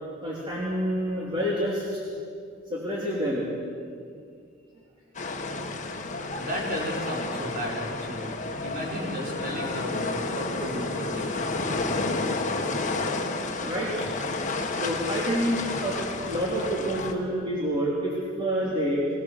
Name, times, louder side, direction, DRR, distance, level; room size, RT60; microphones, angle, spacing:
voice 1, 0.2-2.0 2.7-3.5 13.6-14.1 14.7-16.0 16.2-19.0, equal, 25° right, -6 dB, 3.3 m, -28 dB
sound 1, 5.1-17.1, left 3 dB, 40° left, 1.5 m, -31 dB
voice 2, 6.3-8.4 8.6-11.4, equal, 45° right, -3 dB, 5.0 m, -33 dB
24.0 x 17.0 x 6.7 m, 2.3 s
head